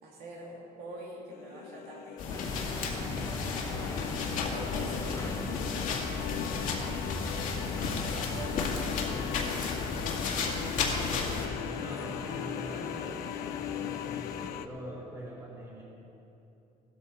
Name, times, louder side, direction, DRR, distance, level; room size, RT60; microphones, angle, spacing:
voice 1, 0.0-6.1 6.5-7.1 8.0-9.7, right 2 dB, 80° right, -3 dB, 2.7 m, -46 dB
sound 1, 1.3-14.7, left 12 dB, 85° left, 0.5 m, -39 dB
sound 2, 2.2-11.5, left 4 dB, 60° left, 2.0 m, -33 dB
sound 3, 2.3-14.5, left 2 dB, 20° left, 1.1 m, -42 dB
voice 2, 10.7-15.8, equal, 20° right, -5 dB, 3.4 m, -44 dB
15.5 x 13.5 x 4.1 m, 2.9 s
cardioid pair, 145°, 16 cm